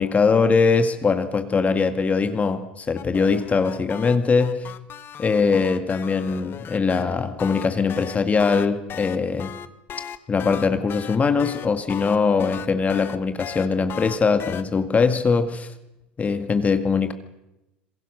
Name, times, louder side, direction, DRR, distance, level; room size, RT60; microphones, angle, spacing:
voice 1, 0.0-4.7 5.2-9.5 10.3-15.7 16.2-17.1, left 5 dB, 25° left, 2.0 m, -21 dB
sound 1, 3.0-7.0 7.4-14.6, left 9 dB, 40° left, 1.6 m, -37 dB
27.0 x 22.0 x 6.5 m
hypercardioid pair, 75°, 5 cm